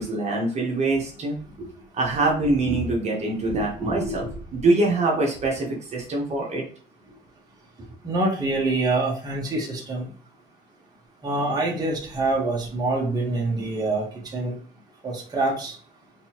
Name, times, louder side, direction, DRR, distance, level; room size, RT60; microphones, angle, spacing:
voice 1, 0.0-1.3 1.9-4.2 4.5-6.6, right 2 dB, 40° right, -2 dB, 1.4 m, -24 dB
voice 2, 3.5-4.3 8.0-10.1 11.2-14.0 14.3-14.5 15.0-15.7, right 2 dB, 25° right, -3 dB, 1.4 m, -26 dB
3.9 x 3.7 x 3.0 m, 0.42 s
cardioid pair, 110°, 17 cm